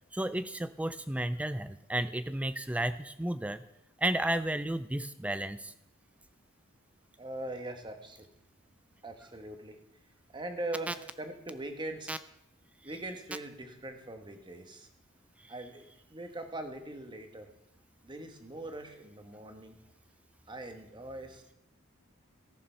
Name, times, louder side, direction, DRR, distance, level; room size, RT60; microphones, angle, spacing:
voice 1, 0.1-3.6 4.0-5.7 10.9-11.0 12.1-12.2 15.4-15.5, right 1 dB, 5° right, 13 dB, 0.3 m, -32 dB
voice 2, 7.2-8.3 9.0-9.8 10.3-12.3 12.8-14.9 15.5-17.5 18.0-19.8 20.5-21.5, right 2 dB, 20° right, 6 dB, 1.2 m, -41 dB
14.0 x 6.9 x 5.6 m, 0.80 s
head